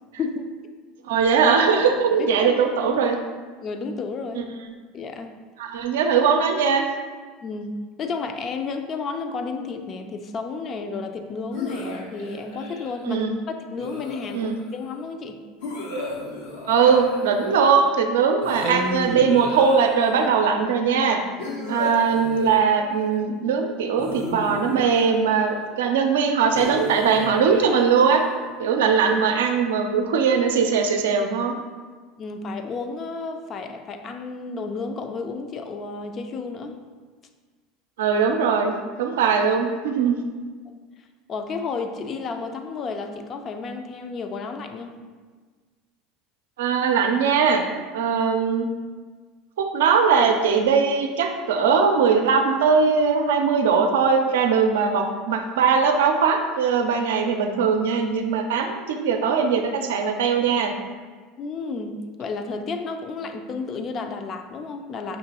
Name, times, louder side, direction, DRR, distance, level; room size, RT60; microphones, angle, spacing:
voice 1, 0.2-0.6 1.4-3.1 3.6-4.4 4.9-5.4 7.4-15.4 21.5-21.8 32.2-36.8 40.7-40.8 41.3-45.0 61.4-65.2, left 4 dB, 40° left, 6 dB, 0.5 m, -32 dB
voice 2, 1.0-3.2 4.3-4.4 5.6-6.9 13.0-13.3 14.3-14.5 16.7-21.2 21.7-28.2 28.6-31.6 38.0-40.2 46.6-47.6 47.9-48.7 49.6-60.7, right 6 dB, 80° right, 4 dB, 0.5 m, -20 dB
sound 1, 11.5-13.0 13.8-14.7 15.6-17.8 18.4-20.3 21.4-23.1 24.0-25.6 26.5-28.5, left 2 dB, 80° left, 0.9 m, -34 dB
5.5 x 2.9 x 2.9 m, 1.5 s
hypercardioid pair, 90°, 0 cm